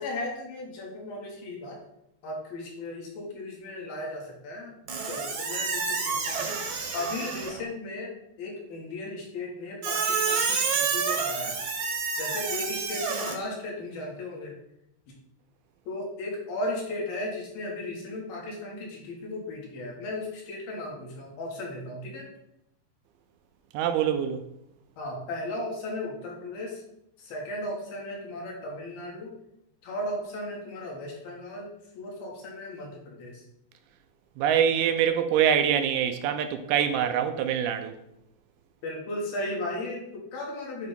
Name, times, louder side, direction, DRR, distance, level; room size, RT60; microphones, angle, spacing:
voice 1, 0.0-1.8 2.2-4.8 5.0-11.6 12.2-14.5 15.1-15.2 15.9-22.3 25.0-26.8 27.2-29.3 29.8-33.4 38.8-40.9, left 1 dB, 65° left, 3.4 m, -36 dB
Squeak, 4.9-7.6 9.8-13.3, right 5 dB, 65° right, 1.9 m, -29 dB
voice 2, 23.7-24.5 34.4-38.0, right 9 dB, 80° right, 2.3 m, -24 dB
9.5 x 3.6 x 5.2 m
omnidirectional pair, 4.8 m